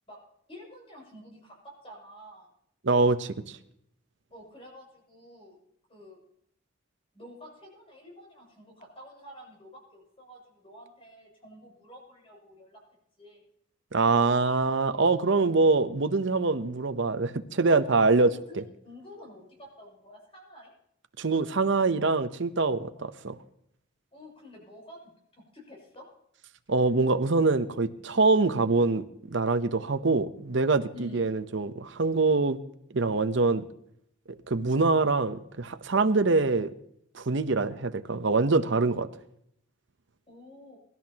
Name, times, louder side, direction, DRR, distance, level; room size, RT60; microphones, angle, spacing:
voice 1, 0.5-2.5 4.3-5.6 5.9-6.2 7.1-12.8 13.2-13.4 15.3-15.9 17.6-18.0 18.2-20.7 24.1-26.1 30.9-31.2 40.3-40.8, equal, 30° left, 6.6 m, -49 dB
voice 2, 2.8-3.6 13.9-18.3 21.2-23.4 26.7-32.6 32.9-33.6 34.3-36.7 37.1-39.1, right 3 dB, 60° right, 0.8 m, -24 dB
24.0 x 12.5 x 2.9 m
head